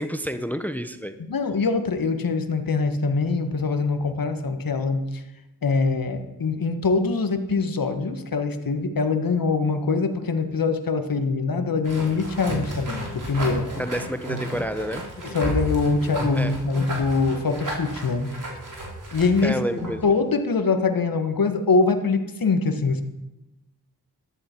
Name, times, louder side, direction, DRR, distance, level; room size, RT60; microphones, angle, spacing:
voice 1, 0.0-1.1 13.8-15.0 16.3-16.5 19.4-20.0, equal, 5° left, 9 dB, 0.9 m, -29 dB
voice 2, 1.2-5.2 5.6-13.7 15.3-18.4 19.1-19.6 20.0-23.0, left 4 dB, 60° left, 8 dB, 1.5 m, -23 dB
sound 1, 11.8-20.1, right 1 dB, 50° right, 4.3 m, -33 dB
13.5 x 11.0 x 4.5 m, 0.96 s
cardioid pair, 45°, 39 cm